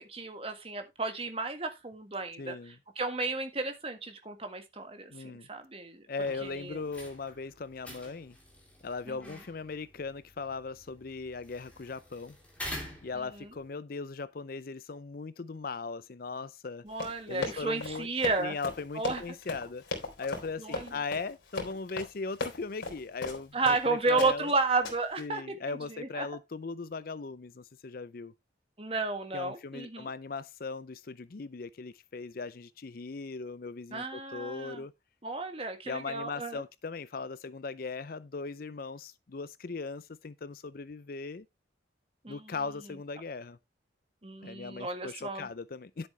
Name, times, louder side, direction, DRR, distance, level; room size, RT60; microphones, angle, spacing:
voice 1, 0.1-2.6 2.9-6.0 6.4-6.8 9.1-9.2 13.1-13.5 16.8-18.5 18.9-19.2 20.6-20.9 23.5-25.4 25.9-26.3 28.8-30.1 33.9-34.8 35.2-36.6 42.2-42.5 44.2-45.5, right 3 dB, 30° right, 1.7 m, -32 dB
voice 2, 2.4-2.8 5.1-5.5 6.1-8.4 8.8-12.4 13.0-16.8 17.3-18.1 18.4-19.8 20.2-24.5 25.2-28.3 29.3-34.9 35.9-41.5 42.3-43.6 44.4-46.1, left 4 dB, 50° left, 0.5 m, -38 dB
sound 1, 6.2-13.7, left 1 dB, 5° left, 3.5 m, -47 dB
Run, 16.9-23.8 24.2-24.5 24.8-25.2, left 2 dB, 85° left, 3.7 m, -37 dB
10.0 x 7.8 x 3.2 m
head